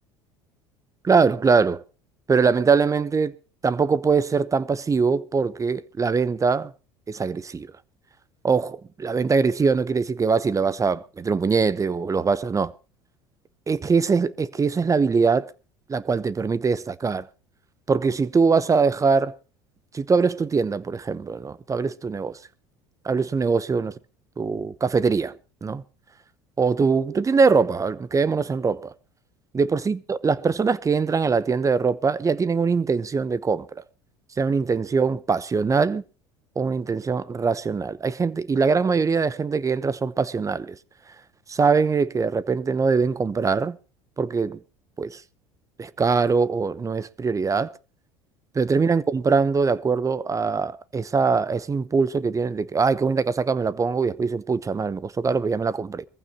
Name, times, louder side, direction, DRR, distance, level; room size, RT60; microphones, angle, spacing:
voice 1, 1.0-1.8 2.3-3.4 3.6-6.7 7.1-7.7 8.4-12.7 13.7-15.5 15.9-17.3 17.9-19.4 19.9-22.4 23.0-23.9 24.4-25.8 26.6-28.9 29.5-33.8 34.4-36.0 36.6-40.8 41.5-43.8 44.2-44.6 45.0-45.2 45.8-47.7 48.5-56.0, right 5 dB, 25° right, 0.9 m, -22 dB
22.5 x 15.0 x 2.9 m
hypercardioid pair, 75°, 14 cm